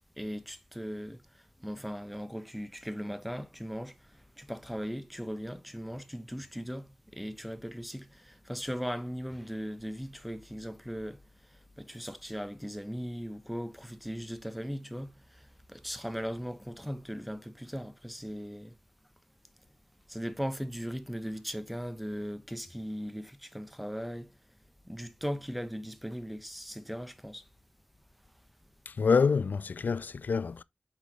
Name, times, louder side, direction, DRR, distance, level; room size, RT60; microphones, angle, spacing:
voice 1, 0.2-1.2 1.6-3.9 4.4-11.2 11.8-15.1 15.7-18.7 20.1-24.3 24.9-27.4, equal, ahead, 1.0 m, -38 dB
voice 2, 28.9-30.6, left 5 dB, 75° left, 0.3 m, -27 dB
8.3 x 5.9 x 3.0 m
wide cardioid pair, 60°, 3 cm